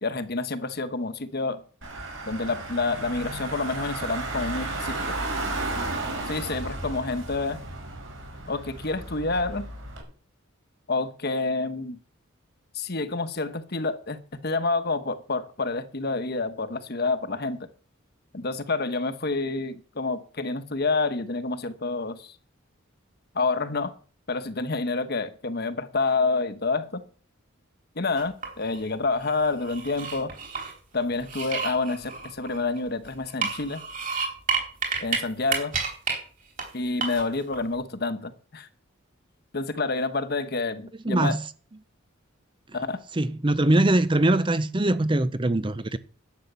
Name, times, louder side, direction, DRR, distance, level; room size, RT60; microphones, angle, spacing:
voice 1, 0.0-1.6 2.3-5.2 6.3-7.6 8.5-9.7 10.9-12.0 12.7-17.7 18.3-22.3 23.3-23.9 24.3-27.0 27.9-30.3 30.9-33.8 35.0-35.7 36.7-38.7 39.5-41.4 42.7-43.0, left 3 dB, 50° left, 1.2 m, -28 dB
Car / Engine, 1.8-10.0, right 2 dB, 70° right, 5.5 m, -33 dB
sound 1, 28.2-28.8 29.2-30.7 31.2-32.9 33.3-35.2 35.5-36.2 36.6-36.7 37.0-37.6, right 5 dB, 40° right, 4.1 m, -30 dB
voice 2, 41.0-41.4 43.1-46.0, right 1 dB, 25° right, 0.6 m, -22 dB
12.0 x 8.8 x 6.9 m
head